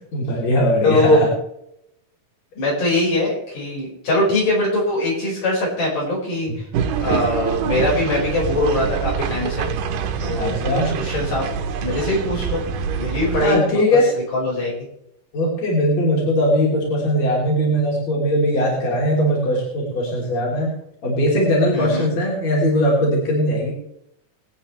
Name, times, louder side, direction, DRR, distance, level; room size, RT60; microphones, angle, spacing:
voice 1, 0.1-1.3 10.4-10.9 13.4-14.1 15.3-20.7 21.0-23.7, equal, 55° left, -4 dB, 4.7 m, -19 dB
voice 2, 0.8-1.3 2.6-6.5 7.0-9.7 10.2-10.5 11.0-11.5 11.8-12.6 13.0-13.8 14.3-14.8 21.7-22.1, left 1 dB, 80° left, -4 dB, 6.9 m, -21 dB
sound 1, 6.7-13.5, right 7 dB, 90° right, 2.6 m, -25 dB
23.5 x 9.0 x 3.3 m, 0.77 s
omnidirectional pair, 3.7 m